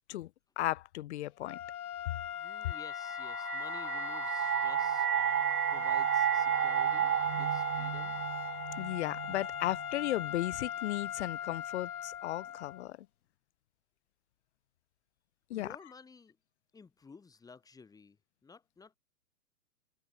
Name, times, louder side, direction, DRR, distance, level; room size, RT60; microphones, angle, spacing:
voice 1, 0.6-1.6 8.8-13.0 15.5-15.7, left 14 dB, 45° left, 2.2 m, -35 dB
sound 1, 1.4-12.9, left 10 dB, 65° left, 3.4 m, -40 dB
voice 2, 2.3-5.1 5.7-8.2 15.5-16.4 16.7-18.2 18.4-19.0, left 4 dB, 5° left, 6.9 m, -54 dB
sound 2, 2.9-10.0, right 10 dB, 70° right, 2.4 m, -32 dB
hypercardioid pair, 160°, 48 cm